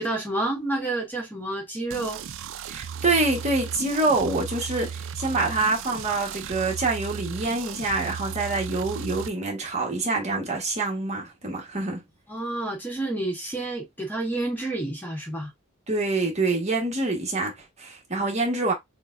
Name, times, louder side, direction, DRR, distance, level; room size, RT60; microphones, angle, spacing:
voice 1, 0.0-2.2 12.3-15.5, right 2 dB, 10° left, 1.3 m, -29 dB
sound 1, 1.9-9.3, right 7 dB, 60° right, 0.4 m, -36 dB
voice 2, 2.7-12.0 15.9-18.7, right 3 dB, 30° right, 1.5 m, -26 dB
6.7 x 2.4 x 2.6 m
head